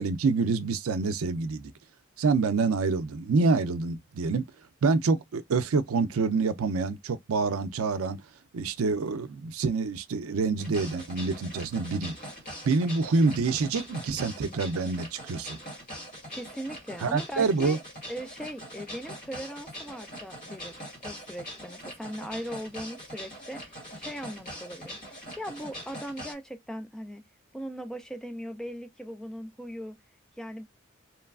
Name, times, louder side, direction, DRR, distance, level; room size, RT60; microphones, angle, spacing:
voice 1, 0.0-1.7 2.2-4.5 4.8-8.2 8.5-12.2 12.7-15.6 17.0-17.8, right 4 dB, 85° right, 0.5 m, -27 dB
sound 1, 10.6-26.3, equal, 40° left, 1.5 m, -42 dB
voice 2, 16.3-17.8 18.1-27.3 27.5-30.0 30.4-30.7, equal, 5° left, 0.4 m, -39 dB
3.0 x 2.3 x 2.3 m
head